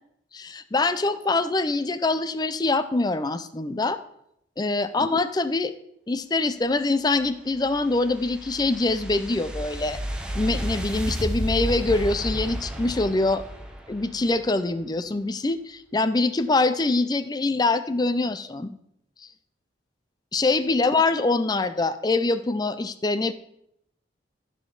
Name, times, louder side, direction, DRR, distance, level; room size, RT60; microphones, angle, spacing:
voice 1, 0.3-4.0 4.6-5.7 6.1-10.0 10.3-13.4 13.9-18.8 20.3-23.3, left 3 dB, 20° left, 12 dB, 0.4 m, -24 dB
sound 1, 7.2-14.4, equal, 5° right, 0.9 m, -32 dB
15.0 x 5.0 x 3.9 m, 0.76 s
head